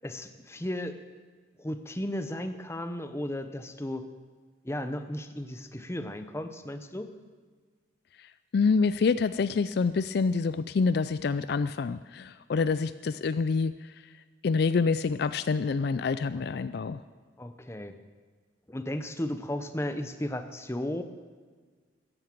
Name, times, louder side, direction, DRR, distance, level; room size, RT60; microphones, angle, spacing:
voice 1, 0.0-1.0 1.6-4.1 4.6-7.1 17.4-18.0 18.7-21.0, left 1 dB, 15° left, 9 dB, 0.8 m, -35 dB
voice 2, 8.2-13.9 14.4-17.0, left 4 dB, 55° left, 13 dB, 0.4 m, -27 dB
14.5 x 10.5 x 7.7 m, 1.5 s
head